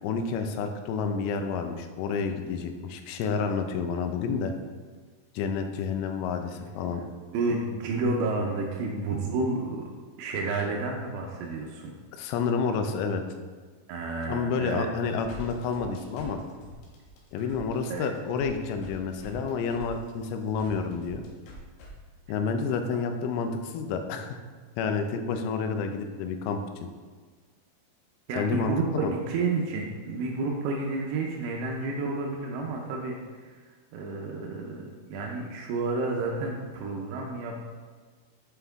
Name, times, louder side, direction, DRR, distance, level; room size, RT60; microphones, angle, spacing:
voice 1, 0.0-4.5 5.3-7.0 12.2-13.2 14.3-16.4 17.3-21.2 22.3-24.4 24.8-26.6 28.3-29.1, left 5 dB, 85° left, 6 dB, 3.2 m, -29 dB
voice 2, 7.3-9.9 10.2-11.9 13.9-14.9 17.9-18.1 28.3-33.2 33.4-33.5 33.9-37.6, right 3 dB, 85° right, -1 dB, 2.5 m, -30 dB
sound 1, 15.1-21.9, left 1 dB, 70° left, 2.8 m, -45 dB
7.8 x 5.7 x 3.5 m, 1.5 s
omnidirectional pair, 5.7 m